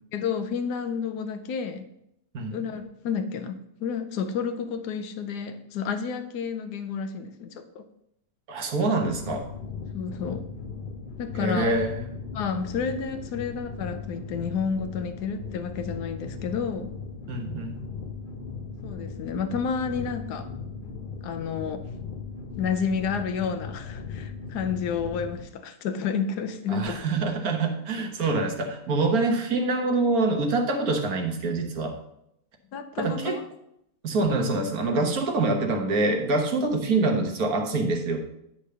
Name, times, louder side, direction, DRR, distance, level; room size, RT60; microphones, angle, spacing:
voice 1, 0.1-1.9 2.5-7.8 9.9-10.5 11.2-11.8 12.3-16.9 18.8-20.5 21.2-21.9 22.6-27.0 32.7-33.4 36.9-37.0, left 6 dB, 75° left, 9 dB, 1.3 m, -30 dB
voice 2, 8.5-9.5 11.3-12.0 17.3-17.8 26.7-32.0 33.0-33.4 34.0-38.2, right 3 dB, 60° right, 3 dB, 1.5 m, -25 dB
sound 1, 9.0-25.4, left 5 dB, 50° left, 0.6 m, -38 dB
10.0 x 3.4 x 6.7 m, 0.79 s
omnidirectional pair, 1.8 m